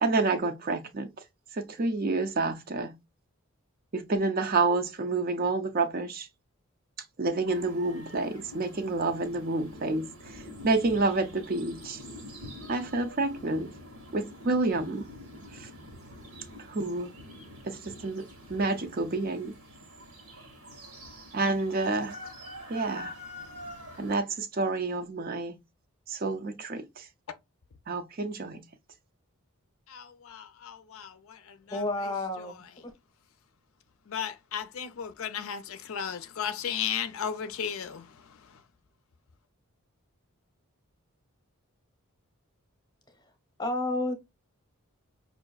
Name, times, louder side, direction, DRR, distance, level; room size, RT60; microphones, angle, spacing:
voice 1, 0.0-1.1 1.6-2.9 3.9-6.3 7.2-10.1 10.6-12.0 12.7-13.7 14.1-15.0 16.7-17.1 17.7-19.5 21.3-22.1 22.7-23.1 24.0-25.5 26.1-26.8 27.9-28.6, right 3 dB, 40° right, 0.4 m, -28 dB
sound 1, 7.5-24.2, left 1 dB, 85° right, 1.2 m, -46 dB
voice 2, 29.9-31.8 34.1-38.6, left 8 dB, 70° left, 0.4 m, -35 dB
voice 3, 31.7-32.5 32.8-32.9 43.6-44.1, left 2 dB, 15° left, 0.8 m, -30 dB
5.4 x 2.5 x 2.3 m
head